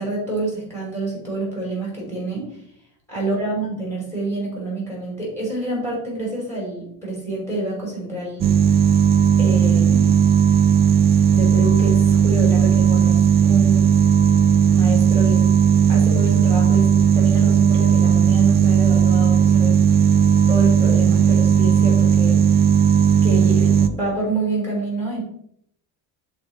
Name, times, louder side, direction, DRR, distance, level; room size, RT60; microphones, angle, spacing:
voice 1, 0.0-2.5 3.1-8.5 9.4-10.2 11.3-13.9 14.7-15.5 15.9-16.9 17.1-19.8 20.5-22.4 23.2-25.2, right 2 dB, 5° left, -4 dB, 3.3 m, -27 dB
sound 1, 8.4-23.9, right 8 dB, 25° right, 0.3 m, -16 dB
11.5 x 4.1 x 3.3 m, 0.70 s
cardioid pair, 150°, 38 cm